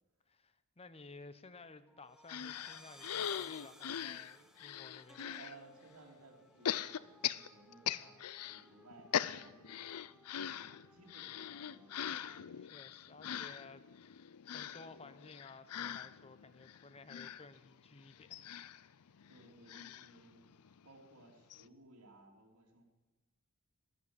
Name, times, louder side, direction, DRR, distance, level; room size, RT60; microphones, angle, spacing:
voice 1, 0.3-5.4 7.8-8.3 12.6-18.5, left 3 dB, 25° left, 0.8 m, -56 dB
sound 1, 1.9-12.4, right 1 dB, ahead, 0.9 m, -61 dB
sound 2, 2.3-5.6 6.6-8.6 8.9-20.8 21.2-21.3 21.5-21.6, left 9 dB, 85° left, 0.5 m, -41 dB
voice 2, 5.4-9.8 10.3-12.0 19.3-22.8, right 2 dB, 70° right, 3.0 m, -60 dB
13.5 x 12.0 x 7.9 m
head